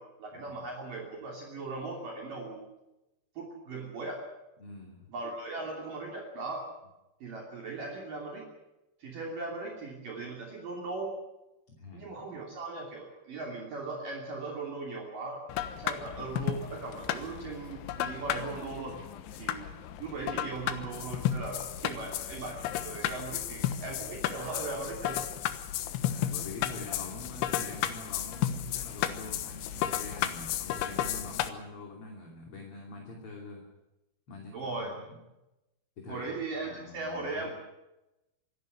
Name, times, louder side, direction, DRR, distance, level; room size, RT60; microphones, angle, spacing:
voice 1, 0.0-2.7 3.4-4.2 5.1-6.7 7.2-8.5 9.0-11.1 11.9-19.0 19.3-19.6 20.0-25.3 34.5-35.0 36.1-37.5, right 3 dB, 50° right, -1 dB, 4.2 m, -38 dB
voice 2, 4.6-5.1 11.7-12.3 26.0-33.7 34.3-35.2 36.0-36.3 36.6-37.5, left 3 dB, 35° left, 1 dB, 3.0 m, -45 dB
sound 1, 15.5-31.5, left 11 dB, 80° left, 3.6 m, -34 dB
25.5 x 12.5 x 10.0 m, 0.94 s
omnidirectional pair, 5.5 m